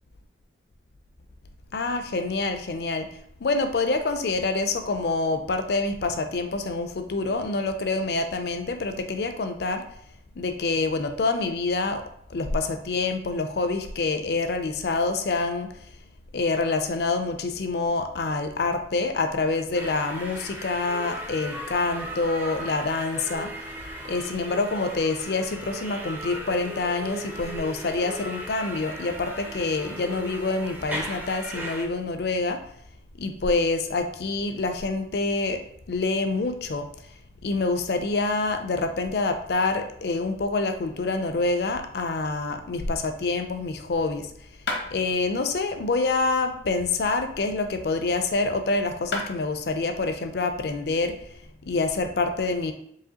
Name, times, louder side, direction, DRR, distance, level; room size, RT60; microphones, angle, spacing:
voice 1, 1.7-3.1 3.4-9.8 10.4-12.0 12.3-15.7 16.3-23.5 24.1-32.6 33.2-36.9 37.4-44.3 44.9-51.1 51.7-52.7, left 3 dB, 65° left, 7 dB, 0.4 m, -26 dB
sound 1, 19.7-31.8, equal, 10° right, 0.4 m, -37 dB
sound 2, 44.7-44.9 46.8-48.1 48.7-48.8 49.1-49.3, left 2 dB, 90° left, 0.9 m, -34 dB
4.8 x 3.0 x 2.8 m, 0.70 s
head